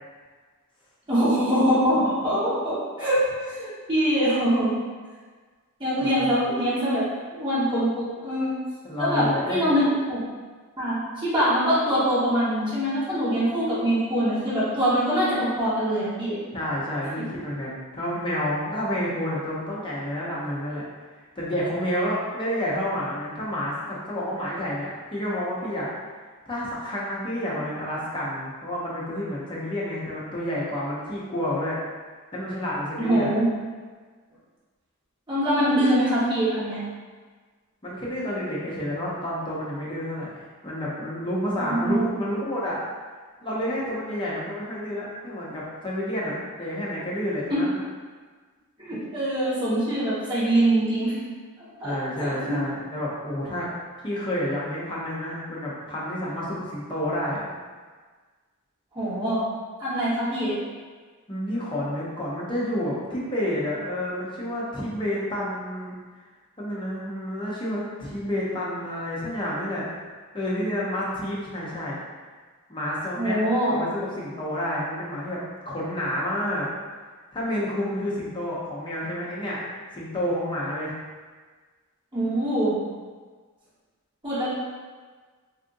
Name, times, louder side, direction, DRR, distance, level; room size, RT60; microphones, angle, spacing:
voice 1, 1.1-4.7 5.8-7.0 7.3-8.6 9.0-10.2 10.8-16.4 33.0-33.5 35.3-36.8 41.7-42.2 48.8-51.1 51.8-52.6 58.9-59.4 59.8-60.6 73.2-73.8 82.1-82.7 84.2-84.5, equal, 20° right, -11 dB, 1.1 m, -23 dB
voice 2, 6.0-6.3 8.8-9.7 16.5-20.8 21.4-25.9 26.5-31.8 32.3-33.4 37.8-42.8 43.4-47.8 51.8-53.7 54.0-57.5 61.3-65.9 66.6-70.0 70.3-72.0 72.7-73.4 73.7-76.7 77.3-80.9, left 1 dB, 20° left, -6 dB, 0.6 m, -29 dB
3.6 x 2.5 x 2.5 m, 1.5 s
head